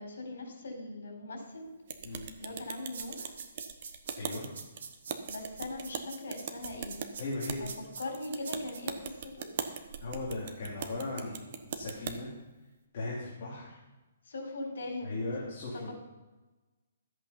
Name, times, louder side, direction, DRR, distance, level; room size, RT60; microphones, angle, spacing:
voice 1, 0.0-1.7 2.4-3.3 5.3-7.0 7.6-7.7 8.0-9.5 14.2-15.1, left 2 dB, 75° left, 2 dB, 4.3 m, -40 dB
sound 1, 1.9-12.2, right 7 dB, 35° right, 0.9 m, -41 dB
sound 2, 2.9-8.8, right 6 dB, 55° right, 1.5 m, -44 dB
voice 2, 4.1-4.5 7.2-7.7 10.0-12.3 12.9-13.8 15.0-15.9, left 2 dB, 35° left, -7 dB, 2.8 m, -37 dB
13.5 x 8.2 x 5.5 m, 1.1 s
hypercardioid pair, 175°, 0 cm